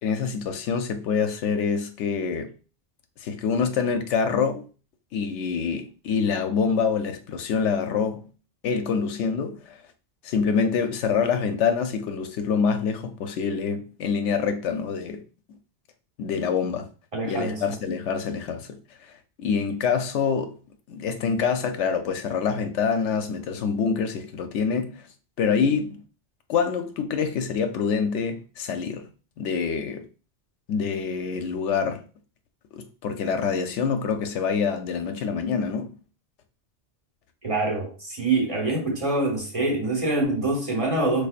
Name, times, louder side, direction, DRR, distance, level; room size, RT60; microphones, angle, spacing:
voice 1, 0.0-2.5 3.2-4.7 5.1-8.3 8.6-9.8 10.2-15.2 16.2-16.9 17.2-18.8 19.4-20.6 20.9-25.0 25.4-26.0 26.5-29.0 29.4-30.1 30.7-32.0 32.7-36.0, left 6 dB, 90° left, 0.9 m, -26 dB
voice 2, 17.1-17.6 37.4-41.3, right 2 dB, 30° right, 1.0 m, -25 dB
4.7 x 2.4 x 2.4 m
omnidirectional pair, 1.2 m